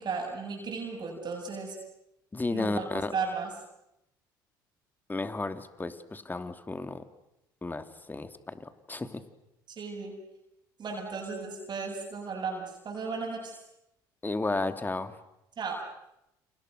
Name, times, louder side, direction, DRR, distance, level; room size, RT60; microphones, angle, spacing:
voice 1, 0.0-1.8 2.5-3.5 9.7-10.2 10.8-13.6 15.6-15.8, right 5 dB, 45° right, 0 dB, 7.7 m, -35 dB
voice 2, 2.3-3.1 5.1-7.0 7.6-9.2 14.2-15.2, left 3 dB, 20° left, 10 dB, 2.7 m, -33 dB
30.0 x 29.5 x 6.6 m, 0.85 s
hypercardioid pair, 60°, 10 cm